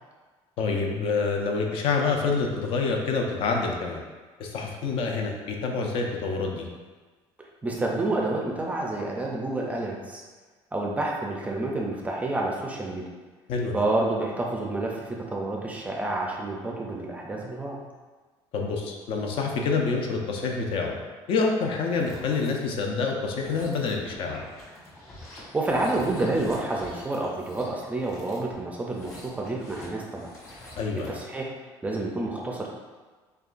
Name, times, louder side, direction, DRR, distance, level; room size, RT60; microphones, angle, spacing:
voice 1, 0.6-4.0 4.4-6.7 13.5-13.8 18.5-21.0 21.3-24.4 30.8-31.2, left 4 dB, 60° left, 1 dB, 0.6 m, -27 dB
voice 2, 7.4-10.2 10.7-13.1 13.7-17.8 25.5-30.3 31.1-31.5 31.8-32.7, right 2 dB, 15° right, -1 dB, 0.4 m, -29 dB
sound 1, 21.8-22.5 23.2-31.3, left 1 dB, 25° left, 1.1 m, -47 dB
6.6 x 2.3 x 2.5 m, 1.4 s
cardioid pair, 160°, 10 cm